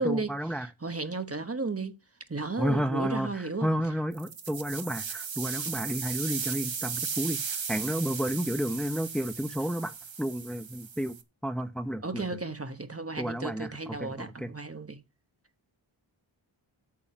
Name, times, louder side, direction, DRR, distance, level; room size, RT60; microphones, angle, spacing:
voice 1, 0.0-0.7 2.6-7.4 7.7-9.9 10.2-11.2 11.4-12.3 13.2-14.5, equal, ahead, 1.0 m, -31 dB
voice 2, 0.6-2.0 2.3-3.7 12.0-15.0, right 3 dB, 30° right, 1.2 m, -34 dB
sound 1, 4.1-11.2, right 6 dB, 70° right, 1.3 m, -36 dB
8.6 x 6.4 x 7.5 m
wide cardioid pair, 65°, 47 cm